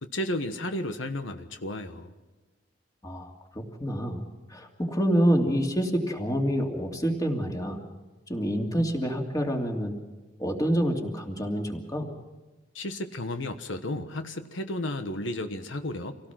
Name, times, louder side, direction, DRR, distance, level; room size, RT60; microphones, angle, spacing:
voice 1, 0.0-2.1 12.7-16.3, left 1 dB, 90° left, 8 dB, 1.3 m, -33 dB
voice 2, 3.0-4.2 4.5-7.8 8.3-9.9 10.4-12.1, equal, 20° left, 2 dB, 2.7 m, -27 dB
26.5 x 17.5 x 5.9 m, 1.2 s
head